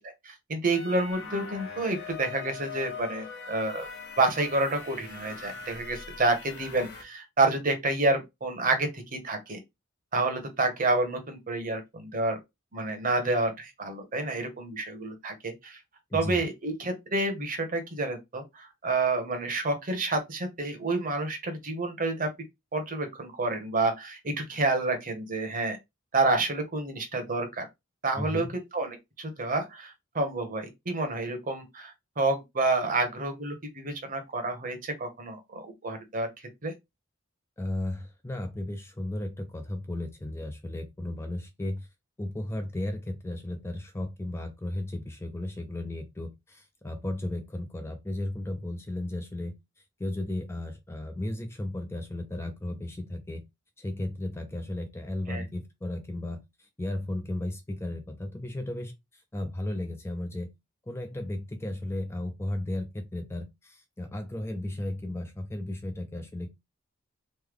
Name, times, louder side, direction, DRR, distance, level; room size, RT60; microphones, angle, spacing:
voice 1, 0.2-3.9 4.2-9.6 10.1-12.4 12.7-15.8 16.1-22.3 22.7-25.8 26.1-27.7 28.0-28.5 28.7-36.3 36.6-36.7 55.3-55.4, right 2 dB, 45° right, 1.0 m, -29 dB
sound 1, 0.7-7.0, left 5 dB, 60° left, 0.8 m, -42 dB
voice 2, 16.1-16.4 28.2-28.5 37.6-41.9 42.2-49.5 50.0-53.4 53.8-60.5 60.9-66.6, left 1 dB, 15° left, 0.4 m, -35 dB
3.2 x 2.2 x 3.4 m
head